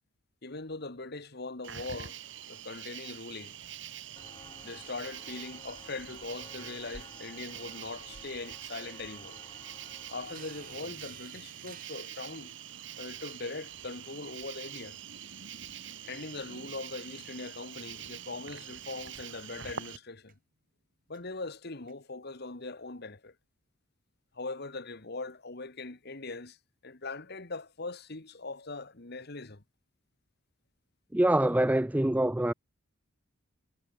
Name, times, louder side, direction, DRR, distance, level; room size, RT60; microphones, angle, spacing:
voice 1, 0.4-2.2 2.5-3.6 4.6-9.4 10.1-12.5 13.0-15.0 16.0-20.3 21.1-23.3 24.3-26.6 26.8-29.6, left 3 dB, 50° left, 1.7 m, -41 dB
Cricket, 1.6-20.0, right 9 dB, 65° right, 2.1 m, -45 dB
Walk footsteps, 4.2-10.9, left 2 dB, 20° left, 5.3 m, -54 dB
sound 1, 10.2-19.6 20.3-20.4 21.1-21.2 21.9-22.0, right 8 dB, 45° right, 7.1 m, -58 dB
voice 2, 31.1-32.5, right 1 dB, 10° right, 0.4 m, -25 dB
head